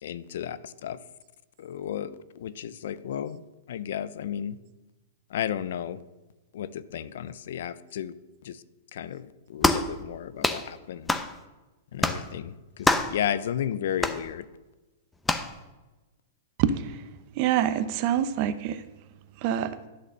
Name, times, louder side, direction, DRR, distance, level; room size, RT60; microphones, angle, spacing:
voice 1, 0.0-1.0 1.6-3.4 3.7-4.6 5.3-6.0 6.5-8.1 8.4-8.6 8.9-11.2 11.9-14.4, left 10 dB, 70° left, 16 dB, 0.5 m, -33 dB
sound 1, 9.6-9.9 10.4-10.6 11.1-11.3 12.0-12.2 12.8-13.2 14.0-14.2 15.2-15.5, left 2 dB, 10° left, 0.7 m, -24 dB
voice 2, 16.6-16.9 17.4-18.8 19.4-19.8, right 10 dB, 50° right, 13 dB, 0.7 m, -25 dB
11.0 x 4.1 x 6.7 m, 1.1 s
hypercardioid pair, 120°, 0 cm